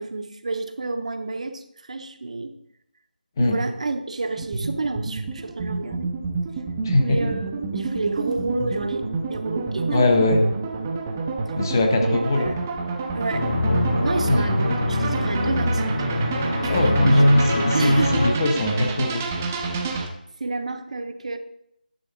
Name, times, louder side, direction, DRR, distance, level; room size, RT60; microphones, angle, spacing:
voice 1, 0.0-2.6 3.4-6.1 7.0-10.2 12.0-12.6 13.1-13.5 14.0-16.1 16.6-17.2 17.7-18.3 20.4-21.4, right 3 dB, 45° right, 7 dB, 0.7 m, -29 dB
sound 1, 4.4-20.1, right 4 dB, 15° right, 0.5 m, -29 dB
voice 2, 6.8-7.3 9.9-10.5 11.6-12.5 14.3-14.8 16.7-19.2, left 2 dB, 20° left, 4 dB, 0.8 m, -22 dB
sound 2, 13.3-18.3, left 1 dB, 40° left, 2.3 m, -22 dB
10.0 x 6.4 x 3.8 m, 0.76 s
figure-of-eight pair, 170°, 5 cm